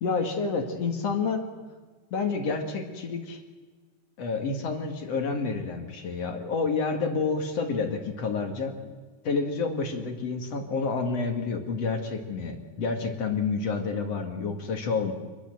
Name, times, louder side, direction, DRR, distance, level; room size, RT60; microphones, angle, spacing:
voice 1, 0.0-1.4 2.1-3.4 4.2-8.9 9.2-15.1, left 4 dB, 50° left, 5 dB, 2.9 m, -29 dB
26.5 x 21.0 x 7.9 m, 1.4 s
omnidirectional pair, 4.0 m